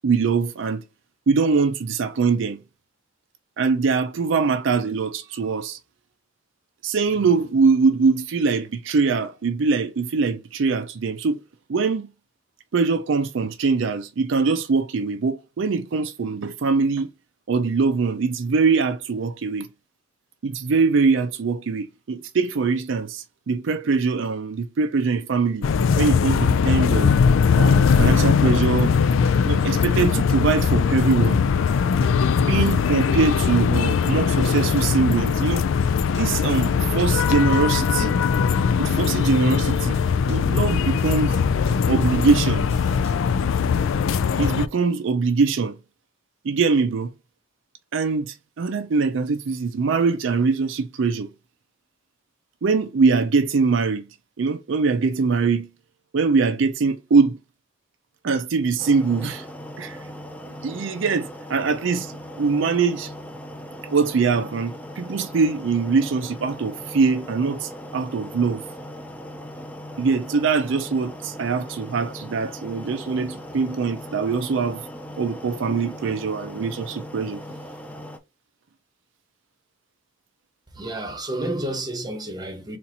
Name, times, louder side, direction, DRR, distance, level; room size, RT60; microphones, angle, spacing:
voice 1, 0.0-0.8 1.3-2.6 3.6-5.8 6.8-11.4 11.7-12.1 12.7-17.1 17.5-19.7 20.4-25.7 26.0-27.1 27.6-28.9 29.4-31.4 32.4-35.6 36.1-38.2 38.8-40.0 40.3-41.4 41.9-42.7 44.4-45.8 46.4-47.1 47.9-51.3 52.6-54.0 54.4-55.7 56.1-57.4 58.2-59.4 59.8-60.0 60.6-63.1 63.8-68.6 70.0-74.8 75.2-77.4, right 4 dB, 65° right, 0.4 m, -22 dB
sound 1, 25.6-44.7, left 6 dB, 70° left, 0.3 m, -20 dB
sound 2, 27.3-44.5, equal, 55° left, 1.8 m, -41 dB
sound 3, 58.8-78.2, equal, 5° left, 0.4 m, -38 dB
voice 2, 80.7-82.8, right 1 dB, 20° right, 0.8 m, -30 dB
4.2 x 2.5 x 4.0 m
head